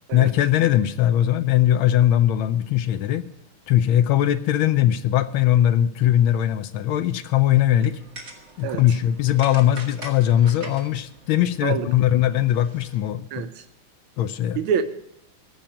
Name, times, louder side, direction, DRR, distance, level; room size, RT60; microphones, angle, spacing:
voice 1, 0.1-3.2 3.7-8.0 8.6-13.3 14.2-14.6, left 12 dB, 75° left, 13 dB, 1.3 m, -20 dB
sound 1, 7.6-13.0, right 2 dB, 30° right, 1.9 m, -44 dB
voice 2, 13.3-13.6 14.6-14.9, right 7 dB, 80° right, 9 dB, 1.5 m, -25 dB
14.5 x 5.7 x 8.9 m, 0.81 s
omnidirectional pair, 2.4 m